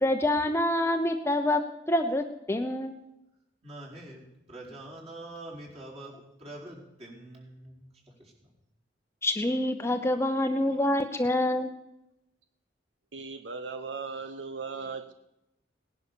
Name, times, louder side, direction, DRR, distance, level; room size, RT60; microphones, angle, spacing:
voice 1, 0.0-1.6 1.9-3.0 9.2-11.7, left 1 dB, 15° left, 6 dB, 0.8 m, -26 dB
voice 2, 3.6-8.5, right 1 dB, 35° right, -3 dB, 4.6 m, -45 dB
voice 3, 13.1-15.1, right 4 dB, 80° right, 9 dB, 0.9 m, -37 dB
18.0 x 11.0 x 7.0 m, 0.89 s
head